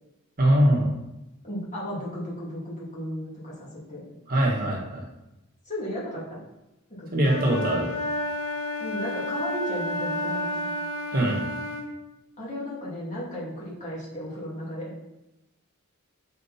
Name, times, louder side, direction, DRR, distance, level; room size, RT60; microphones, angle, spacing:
voice 1, 0.4-0.9 4.3-5.0 7.1-7.9 11.1-11.4, right 1 dB, 40° right, -2 dB, 1.4 m, -22 dB
voice 2, 1.4-4.0 5.7-6.4 7.0-7.3 8.8-10.7 12.4-15.0, equal, 35° left, -6 dB, 2.7 m, -35 dB
Wind instrument woodwind instrument, 7.3-11.9, left 1 dB, 75° left, 1.8 m, -31 dB
7.1 x 4.6 x 4.3 m, 0.94 s
head